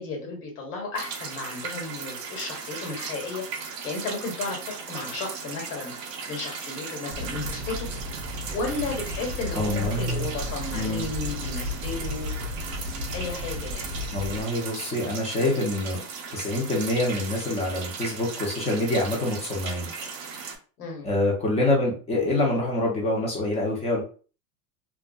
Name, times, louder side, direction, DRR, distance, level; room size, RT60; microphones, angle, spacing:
voice 1, 0.0-3.5 3.8-5.9 6.3-7.9 8.5-12.3 13.1-13.9 20.8-21.1, left 3 dB, 75° left, 0 dB, 1.3 m, -33 dB
sound 1, 0.9-20.6, right 5 dB, 60° right, 0.7 m, -37 dB
sound 2, 7.1-14.4, left 2 dB, 25° right, 0.3 m, -34 dB
voice 2, 9.5-10.3 10.7-11.1 14.1-16.0 16.3-19.9 21.0-24.0, left 1 dB, 15° left, -1 dB, 0.6 m, -26 dB
2.6 x 2.3 x 2.2 m, 0.38 s
supercardioid pair, 135°, 48 cm